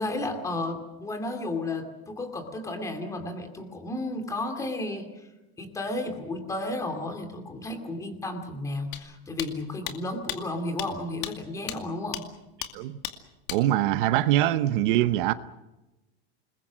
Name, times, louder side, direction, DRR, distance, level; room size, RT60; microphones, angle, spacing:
voice 1, 0.0-5.1 5.6-12.2, left 2 dB, 10° left, 2.5 m, -33 dB
sound 1, 8.9-9.0 9.4-9.5 9.9-10.0 10.3-10.4 10.8-10.9 11.2-11.3 11.7-11.8 12.1-12.2 12.6-12.7 13.0-13.1 13.5-13.6, left 13 dB, 60° left, 2.4 m, -33 dB
voice 2, 13.5-15.3, right 13 dB, 55° right, 0.9 m, -23 dB
28.5 x 21.5 x 6.3 m
supercardioid pair, 180°, 31 cm